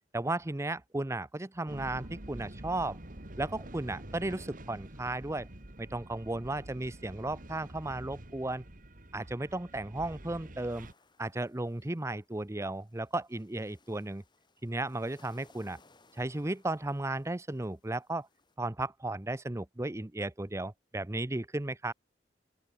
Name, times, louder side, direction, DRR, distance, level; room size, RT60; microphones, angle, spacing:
voice 1, 0.1-3.0 3.4-5.5 5.8-8.6 9.1-10.9 11.2-14.2 14.6-15.8 16.2-18.3 18.6-21.9, right 2 dB, 15° right, 0.7 m, -35 dB
sound 1, 1.7-10.9, right 1 dB, 50° right, 2.6 m, -47 dB
sound 2, 10.7-18.6, left 3 dB, 25° left, 4.0 m, -65 dB
open air
head